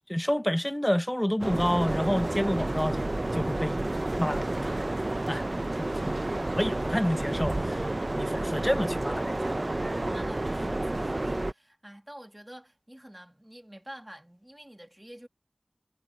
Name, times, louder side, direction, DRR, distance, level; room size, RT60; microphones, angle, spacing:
voice 1, 0.1-3.9 4.2-4.8 5.3-7.9 8.2-9.6, equal, 15° left, 0.8 m, -29 dB
sound 1, 1.4-11.5, right 2 dB, 50° right, 0.5 m, -30 dB
voice 2, 10.1-15.3, right 1 dB, 15° right, 1.9 m, -48 dB
wide cardioid pair, 45°, 0 cm